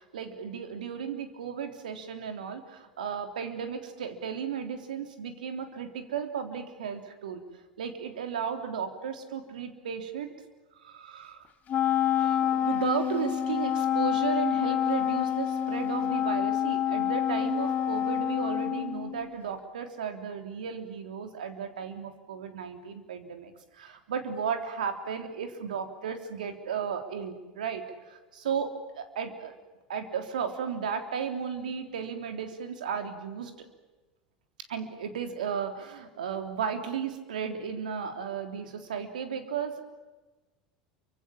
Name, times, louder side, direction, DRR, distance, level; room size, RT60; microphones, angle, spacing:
voice 1, 0.0-7.4 7.8-10.3 10.8-11.5 12.1-29.5 29.9-33.7 34.7-39.8, right 7 dB, 85° right, 7 dB, 3.5 m, -34 dB
Wind instrument woodwind instrument, 11.7-19.3, left 9 dB, 40° left, 1.7 m, -27 dB
29.0 x 25.5 x 7.3 m, 1.2 s
hypercardioid pair, 85°, 4 cm